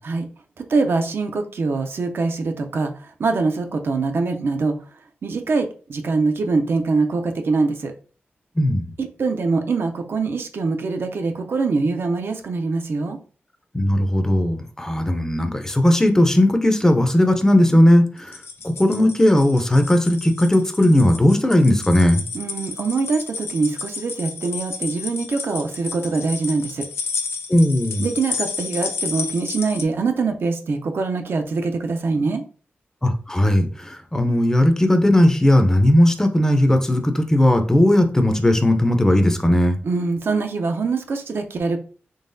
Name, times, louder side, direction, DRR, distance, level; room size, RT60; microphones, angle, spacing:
voice 1, 0.6-4.8 5.2-7.9 9.0-13.2 22.3-26.9 28.0-32.4 39.8-41.8, right 4 dB, 65° right, 5 dB, 0.5 m, -23 dB
voice 2, 13.7-18.4 18.6-22.2 27.5-28.0 33.0-39.8, left 1 dB, 15° left, 6 dB, 0.5 m, -17 dB
sound 1, 18.2-29.8, left 5 dB, 85° left, 0.4 m, -32 dB
3.8 x 3.4 x 2.6 m, 0.39 s
wide cardioid pair, 115°, 4 cm